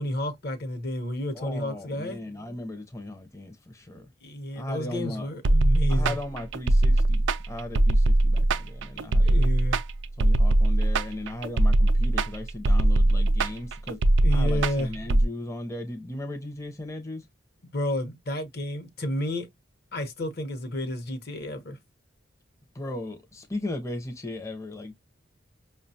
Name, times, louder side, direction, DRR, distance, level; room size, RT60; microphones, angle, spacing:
voice 1, 0.0-2.2 4.2-6.2 9.2-9.8 14.2-14.9 17.7-19.5 19.9-21.8, left 1 dB, 55° left, 0.8 m, -31 dB
voice 2, 1.3-4.1 4.6-5.3 5.9-9.5 10.2-14.0 14.3-17.3 22.7-24.9, left 1 dB, 15° left, 0.5 m, -37 dB
sound 1, 5.4-15.3, right 1 dB, 75° right, 0.4 m, -21 dB
5.4 x 2.2 x 2.6 m
head